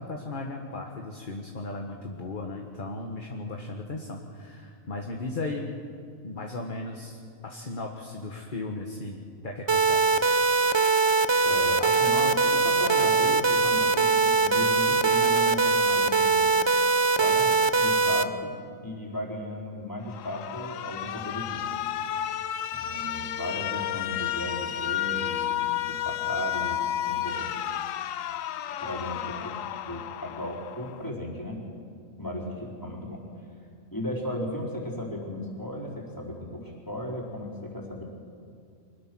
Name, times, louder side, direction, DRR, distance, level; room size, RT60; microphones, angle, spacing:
voice 1, 0.0-5.7 6.2-10.2, left 2 dB, 35° left, 1 dB, 1.6 m, -36 dB
sound 1, 9.7-18.2, right 4 dB, 40° right, 0.4 m, -22 dB
voice 2, 11.4-16.5 17.2-21.9 22.7-27.5 28.8-29.5 29.9-31.6 32.2-33.2 33.9-38.0, left 1 dB, 15° left, -3 dB, 4.3 m, -35 dB
Alarm, 20.1-31.1, left 11 dB, 70° left, 1.0 m, -32 dB
24.5 x 20.5 x 6.2 m, 2.4 s
omnidirectional pair, 1.5 m